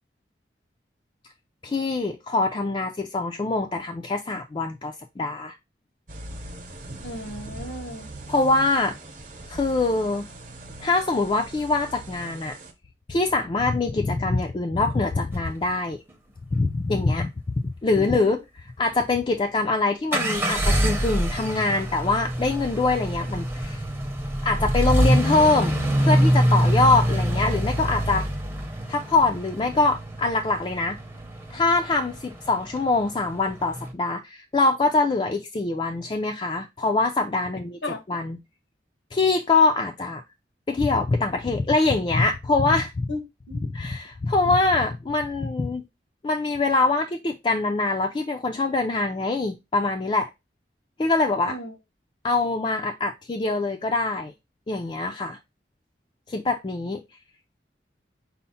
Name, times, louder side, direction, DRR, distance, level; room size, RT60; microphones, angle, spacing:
voice 1, 1.6-5.6 8.3-8.9 9.5-10.3 10.8-12.6 13.1-16.0 16.5-17.3 17.6-23.8 24.4-28.2 28.9-31.0 31.5-37.8 38.1-38.4 39.1-40.2 40.7-43.1 43.6-45.8 46.2-50.3 51.0-51.5 52.2-54.3 54.7-55.4 56.3-57.0, left 3 dB, 25° left, 0.3 m, -24 dB
sound 1, 6.1-12.7, right 1 dB, 50° right, 0.9 m, -41 dB
voice 2, 7.0-8.1 18.0-18.4 37.8-38.0 43.1-43.2 43.5-43.6 51.5-51.7, left 1 dB, 85° left, 0.9 m, -34 dB
sound 2, 15.3-15.5 20.1-33.9, equal, 10° right, 0.6 m, -25 dB
5.5 x 2.0 x 4.1 m
head